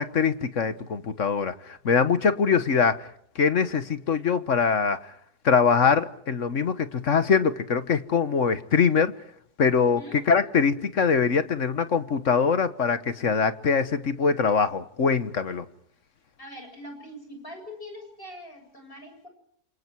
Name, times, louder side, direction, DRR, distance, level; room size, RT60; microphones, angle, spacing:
voice 1, 0.0-3.1 3.3-5.0 5.4-9.1 9.6-15.6, left 5 dB, 50° left, 1.5 m, -23 dB
voice 2, 9.8-10.2 16.4-19.3, left 1 dB, 30° left, 7.7 m, -43 dB
29.0 x 27.5 x 4.7 m
omnidirectional pair, 1.8 m